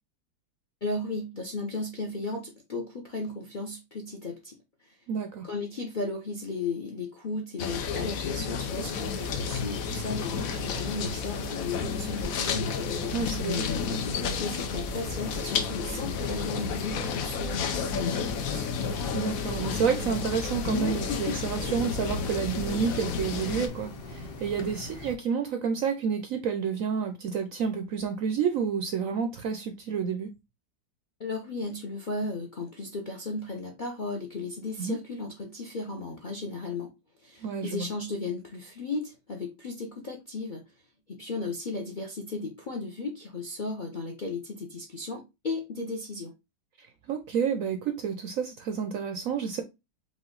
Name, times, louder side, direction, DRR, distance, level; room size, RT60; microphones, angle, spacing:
voice 1, 0.8-5.0 5.4-13.1 13.8-18.7 31.2-36.9 37.2-40.6 41.1-46.3, left 3 dB, 50° left, 0.6 m, -35 dB
voice 2, 5.1-5.5 13.1-14.0 19.1-30.3 34.8-35.0 37.4-37.9 46.8-49.6, right 6 dB, 70° right, 0.8 m, -30 dB
sound 1, 7.6-23.7, left 6 dB, 65° left, 1.0 m, -31 dB
sound 2, 8.7-25.2, left 2 dB, 90° left, 1.5 m, -41 dB
5.1 x 2.5 x 3.8 m
omnidirectional pair, 1.9 m